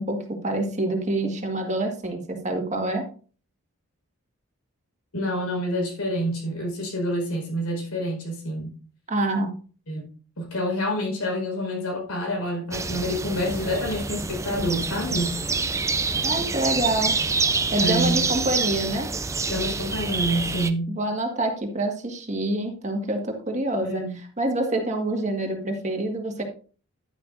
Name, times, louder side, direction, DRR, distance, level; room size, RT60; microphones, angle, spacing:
voice 1, 0.0-3.0 9.1-9.5 16.2-17.1 17.7-19.1 20.9-26.4, right 1 dB, 30° right, 1.7 m, -26 dB
voice 2, 5.1-8.8 9.9-10.1 10.4-15.4 17.8-18.2 19.5-20.9 23.8-24.2, equal, 85° left, 4.8 m, -27 dB
sound 1, 12.7-20.7, right 4 dB, 15° right, 0.4 m, -27 dB
11.0 x 10.5 x 2.6 m
head